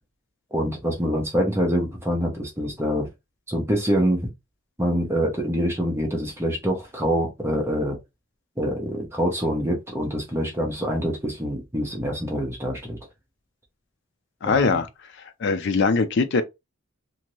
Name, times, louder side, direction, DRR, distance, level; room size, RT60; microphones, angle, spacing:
voice 1, 0.5-3.1 3.5-4.3 4.8-8.0 8.6-13.0 14.4-14.8, equal, 10° right, 0.8 m, -25 dB
voice 2, 14.4-14.9 15.4-16.4, left 4 dB, 55° left, 0.4 m, -21 dB
2.7 x 2.6 x 3.0 m
head